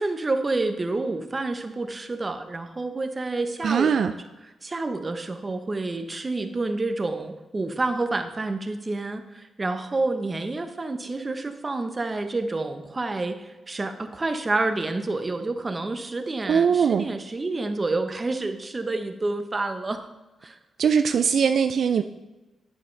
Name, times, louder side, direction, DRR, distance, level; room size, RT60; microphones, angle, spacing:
voice 1, 0.0-4.1 4.6-20.1 20.4-20.6, right 2 dB, 25° right, 7 dB, 1.0 m, -29 dB
voice 2, 3.6-4.1 16.5-17.1 20.8-22.0, right 7 dB, 60° right, 8 dB, 0.4 m, -21 dB
10.5 x 9.5 x 3.3 m, 1.1 s
cardioid pair, 100°, 0 cm